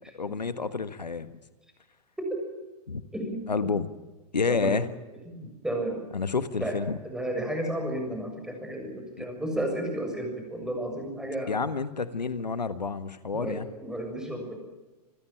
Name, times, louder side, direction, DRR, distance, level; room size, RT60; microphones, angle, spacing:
voice 1, 0.1-1.3 2.9-3.0 3.5-3.9 4.3-4.9 6.1-7.0 11.5-13.7, left 4 dB, 90° left, 13 dB, 1.4 m, -29 dB
voice 2, 3.1-3.7 4.5-4.8 5.3-6.0 6.6-6.8 7.0-11.6 13.3-14.6, right 1 dB, 5° right, 3 dB, 7.1 m, -32 dB
28.0 x 15.5 x 9.0 m, 1.2 s
hypercardioid pair, 115°, 21 cm